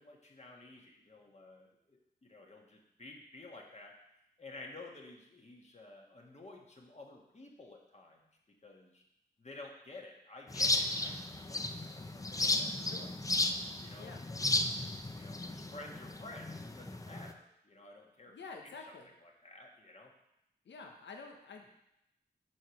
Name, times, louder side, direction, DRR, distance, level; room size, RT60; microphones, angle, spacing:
voice 1, 0.0-4.0 4.4-8.3 8.6-9.0 9.4-13.1 13.8-14.4 15.1-18.4 18.6-18.7 19.2-20.1, left 2 dB, 35° left, 0 dB, 1.6 m, -52 dB
sound 1, 10.5-17.3, left 2 dB, 20° left, 0.6 m, -34 dB
voice 2, 18.3-19.1 20.6-21.7, left 4 dB, 75° left, 2 dB, 1.0 m, -49 dB
6.2 x 4.8 x 5.8 m, 0.83 s
cardioid pair, 55°, 19 cm